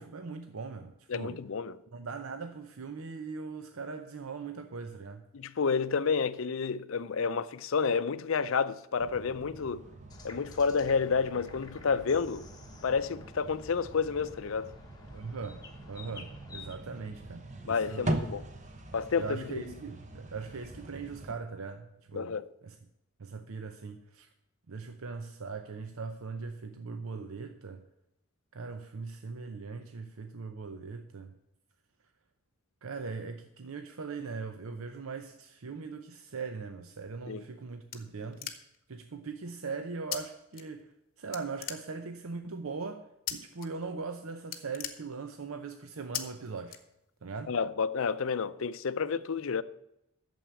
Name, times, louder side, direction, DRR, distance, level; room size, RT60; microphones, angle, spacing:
voice 1, 0.0-1.4 1.9-5.2 15.1-18.2 19.2-22.4 22.6-22.8 23.2-24.3 24.7-27.8 28.5-31.3 32.8-38.5 38.9-46.8 47.2-47.5, right 4 dB, 75° right, 0.7 m, -40 dB
voice 2, 1.1-1.8 5.3-9.8 10.2-12.4 12.8-14.7 17.7-18.4 18.9-19.6 22.1-22.5 37.3-37.4 47.5-49.6, left 5 dB, 65° left, 0.5 m, -30 dB
sound 1, 9.0-21.3, right 1 dB, 35° right, 0.9 m, -42 dB
sound 2, 10.1-16.7, left 3 dB, 20° left, 1.2 m, -51 dB
sound 3, 37.2-38.9 40.1-40.2 40.5-41.0 41.3-42.3 43.3-43.7 44.0-44.1 44.4-45.6 46.1-46.2 46.7-47.3, left 10 dB, 40° left, 1.0 m, -39 dB
9.1 x 7.2 x 8.5 m
head